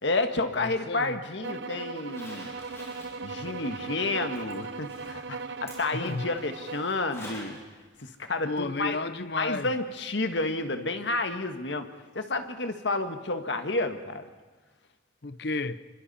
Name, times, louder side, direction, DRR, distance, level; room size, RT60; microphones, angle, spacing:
voice 1, 0.0-2.6 3.2-7.6 8.0-9.0 9.4-11.9 12.1-14.2, left 2 dB, 80° left, 1.6 m, -30 dB
voice 2, 0.6-1.2 5.9-6.3 8.4-9.7 15.2-15.8, left 3 dB, 60° left, 0.8 m, -32 dB
sound 1, 1.4-6.9, right 4 dB, 75° right, 0.8 m, -38 dB
Zipper (clothing), 2.0-7.6 8.0-8.1 10.0-10.1 10.5-10.6, left 1 dB, 15° left, 7.9 m, -48 dB
29.0 x 24.5 x 4.3 m
head